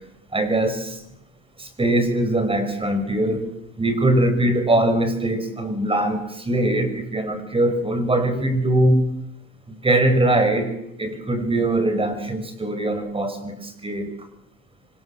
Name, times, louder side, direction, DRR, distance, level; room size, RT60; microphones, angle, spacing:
voice 1, 0.3-1.0 1.6-3.5 3.8-9.0 9.7-10.7 11.0-14.1, right 1 dB, 15° right, 9 dB, 5.8 m, -21 dB
27.5 x 25.5 x 7.4 m, 0.80 s
supercardioid pair, 115°, 39 cm